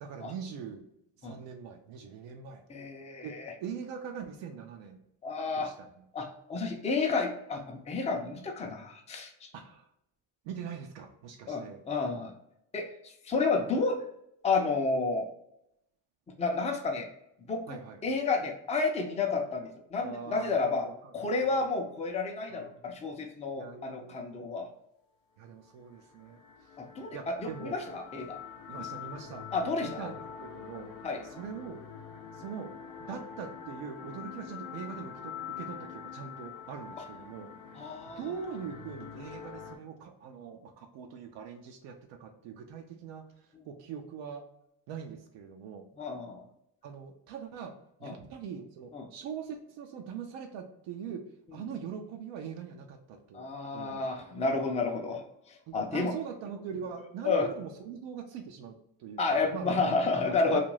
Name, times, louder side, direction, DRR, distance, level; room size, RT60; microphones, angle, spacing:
voice 1, 0.0-0.9 1.2-2.6 3.2-3.3 3.6-5.0 5.6-6.0 9.5-9.9 10.4-11.8 17.7-18.0 20.0-21.5 22.5-22.7 23.6-24.7 25.4-26.4 27.1-27.8 28.7-29.5 29.8-30.1 30.4-30.9 31.3-31.8 32.3-32.7 33.0-37.5 38.0-43.2 43.6-44.4 44.9-45.9 46.8-47.7 48.0-51.2 51.5-53.5 53.7-54.0 55.7-59.8 60.2-60.6, right 7 dB, 75° right, 4 dB, 0.5 m, -42 dB
voice 2, 2.7-3.5 5.2-5.7 6.1-9.3 11.5-12.3 12.7-14.0 14.4-15.3 16.4-17.1 17.5-20.9 21.1-24.7 26.8-28.4 29.5-30.1 31.0-31.2 37.7-38.3 46.0-46.4 48.0-48.2 48.9-49.1 53.3-55.2 55.7-56.1 57.2-57.5 59.2-60.6, left 3 dB, 15° left, 2 dB, 0.5 m, -31 dB
sound 1, 25.6-39.8, left 7 dB, 80° left, 0.6 m, -45 dB
2.4 x 2.2 x 3.1 m, 0.79 s
supercardioid pair, 75°, 45 cm